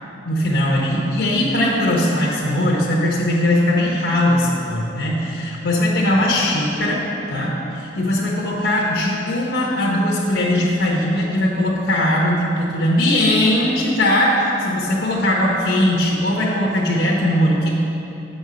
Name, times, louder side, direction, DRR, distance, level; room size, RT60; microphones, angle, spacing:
voice 1, 0.2-7.0 7.3-17.7, left 1 dB, 60° left, -3 dB, 0.9 m, -19 dB
6.6 x 5.4 x 6.2 m, 2.9 s
head